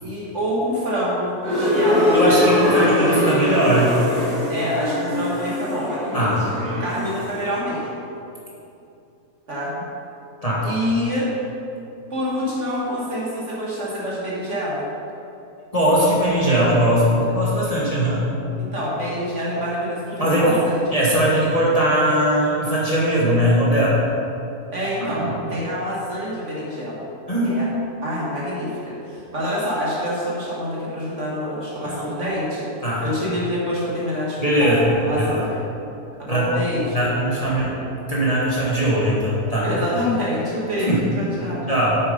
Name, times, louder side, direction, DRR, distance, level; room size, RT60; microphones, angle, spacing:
voice 1, 0.0-2.4 4.5-6.3 6.7-8.0 9.5-9.7 10.6-11.3 12.1-14.9 18.5-20.9 24.7-27.1 27.4-27.7 28.0-32.7 33.0-35.6 36.2-37.1 39.6-41.6, equal, 45° right, -6 dB, 1.9 m, -26 dB
sound 1, 1.4-7.3, left 1 dB, 65° right, 3.1 m, -21 dB
voice 2, 2.1-3.9 6.1-6.4 10.4-10.7 15.7-18.2 20.2-20.6 20.9-24.0 25.0-25.3 27.3-27.5 31.8-32.0 32.8-33.0 34.4-34.9 35.2-35.3 36.3-36.5 36.9-37.7 38.1-39.7 40.8-41.0 41.7-42.0, equal, 20° left, -7 dB, 1.5 m, -19 dB
7.6 x 7.5 x 5.3 m, 2.7 s
omnidirectional pair, 1.8 m